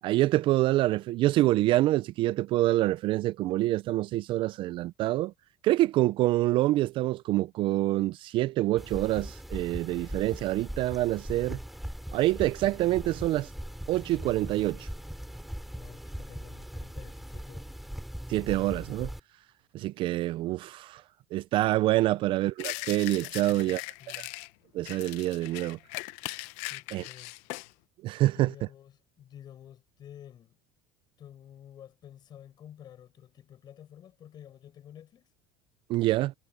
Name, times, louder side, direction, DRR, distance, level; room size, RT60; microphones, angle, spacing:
voice 1, 0.0-5.3 5.6-11.6 12.1-13.5 13.9-14.9 18.3-19.1 19.7-21.0 21.3-23.8 24.2-24.3 24.7-25.8 26.9-27.0 28.0-28.5 35.9-36.3, right 16 dB, 45° right, 0.4 m, -26 dB
sound 1, 8.8-19.2, equal, ahead, 3.3 m, -40 dB
voice 2, 15.7-17.9 23.5-24.3 26.7-27.3 28.3-30.6 31.2-35.3, left 10 dB, 35° left, 6.3 m, -51 dB
sound 2, 22.6-24.5 24.9-27.7, left 22 dB, 75° left, 0.7 m, -39 dB
cardioid pair, 145°, 12 cm